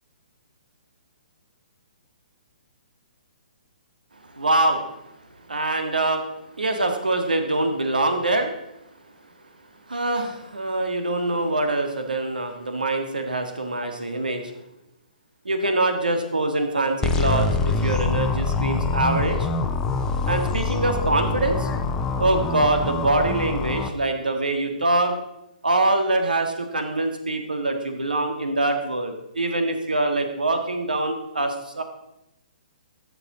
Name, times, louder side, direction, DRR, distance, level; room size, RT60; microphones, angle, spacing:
voice 1, 4.3-4.9 5.5-6.3 6.6-8.5 9.9-14.6 15.4-19.5 20.2-21.7 22.2-25.2 25.6-31.8, right 2 dB, 80° right, 6 dB, 1.6 m, -24 dB
sound 1, 17.0-23.9, left 3 dB, 15° left, 0.8 m, -25 dB
13.0 x 6.9 x 4.0 m, 0.86 s
figure-of-eight pair, 130°, 5 cm